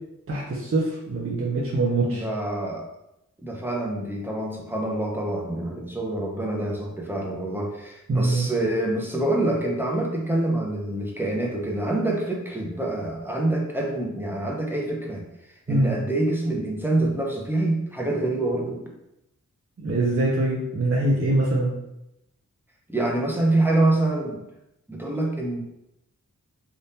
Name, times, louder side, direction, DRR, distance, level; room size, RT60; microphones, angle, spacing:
voice 1, 0.3-2.3 8.1-8.5 15.7-16.0 19.8-21.7, right 2 dB, 45° right, -4 dB, 0.7 m, -23 dB
voice 2, 2.0-2.9 3.4-15.2 15.7-18.8 22.9-24.4 24.9-25.6, right 2 dB, 5° right, -1 dB, 0.8 m, -26 dB
3.5 x 2.5 x 2.8 m, 0.85 s
wide cardioid pair, 60°, 32 cm